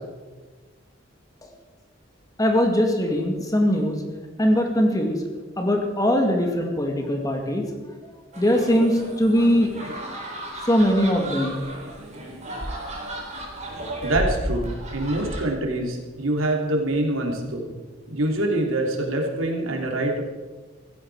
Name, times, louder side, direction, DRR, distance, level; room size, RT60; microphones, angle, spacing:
voice 1, 2.4-4.0 4.4-5.2 5.6-7.6 8.4-9.7 10.7-11.6, equal, 20° left, 3 dB, 2.0 m, -21 dB
sound 1, 8.3-15.4, right 1 dB, 35° right, 3.8 m, -33 dB
voice 2, 14.0-17.7 18.1-20.2, right 1 dB, 85° right, 1 dB, 3.1 m, -25 dB
16.0 x 15.0 x 4.7 m, 1.3 s
head